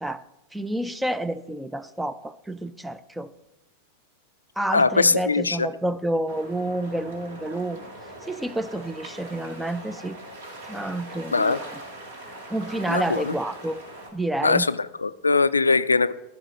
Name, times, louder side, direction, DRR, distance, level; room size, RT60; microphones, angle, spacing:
voice 1, 0.5-3.3 4.6-7.8 8.3-10.2 10.7-11.7 12.5-13.8 14.1-14.7, right 1 dB, 5° right, 0.4 m, -29 dB
voice 2, 4.7-5.7 11.3-11.6 12.9-13.3 14.4-16.1, left 4 dB, 80° left, 0.3 m, -21 dB
sound 1, 6.3-14.1, right 1 dB, 55° right, 2.0 m, -41 dB
14.0 x 5.7 x 5.2 m
figure-of-eight pair, 90°, 0 cm